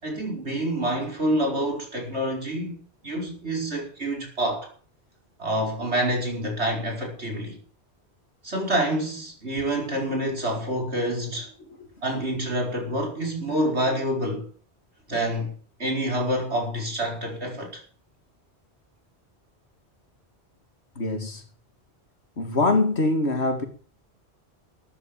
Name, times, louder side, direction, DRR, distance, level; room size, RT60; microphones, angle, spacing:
voice 1, 0.0-2.8 3.0-4.7 5.4-7.6 8.4-11.5 12.0-14.5 15.1-15.5 15.8-17.7, right 1 dB, 80° right, 5.6 m, -27 dB
voice 2, 21.0-21.4 22.4-23.6, left 2 dB, 75° left, 2.6 m, -23 dB
13.5 x 10.0 x 7.5 m
omnidirectional pair, 1.1 m